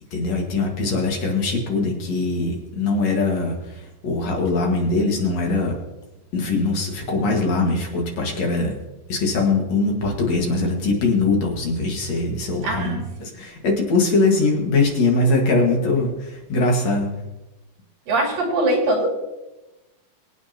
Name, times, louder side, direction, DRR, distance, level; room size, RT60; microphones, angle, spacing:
voice 1, 0.1-3.5 4.0-5.7 6.3-8.7 9.1-17.1, left 3 dB, 55° left, 1 dB, 2.8 m, -21 dB
voice 2, 12.6-13.0 18.1-19.1, right 2 dB, 85° right, 0 dB, 4.3 m, -21 dB
24.0 x 8.7 x 2.9 m, 1.0 s
omnidirectional pair, 3.9 m